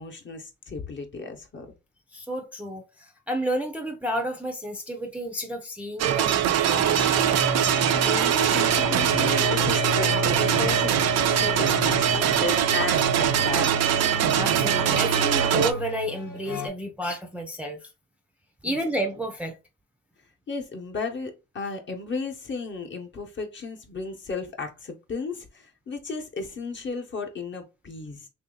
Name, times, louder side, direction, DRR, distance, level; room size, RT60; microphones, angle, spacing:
voice 1, 0.0-1.7 8.0-14.1 18.6-18.8 20.5-28.3, left 4 dB, 40° left, 1.0 m, -34 dB
voice 2, 2.1-7.1 14.4-17.9 18.6-19.6, right 1 dB, 5° right, 0.6 m, -31 dB
sound 1, 6.0-15.7, right 10 dB, 60° right, 0.5 m, -22 dB
sound 2, 6.6-16.7, left 5 dB, 80° left, 1.2 m, -32 dB
3.1 x 2.7 x 3.8 m
cardioid pair, 90°, 30 cm